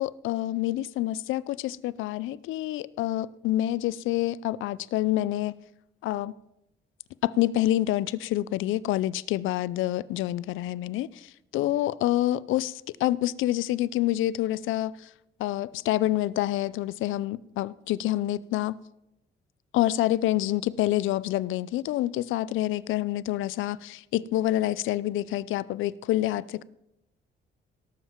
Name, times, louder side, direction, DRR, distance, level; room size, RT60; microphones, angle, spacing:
voice 1, 0.0-5.5 6.0-6.3 7.2-15.1 15.4-18.8 19.7-26.6, left 14 dB, 85° left, 0.4 m, -27 dB
17.5 x 7.4 x 4.5 m
cardioid pair, 90°, 20 cm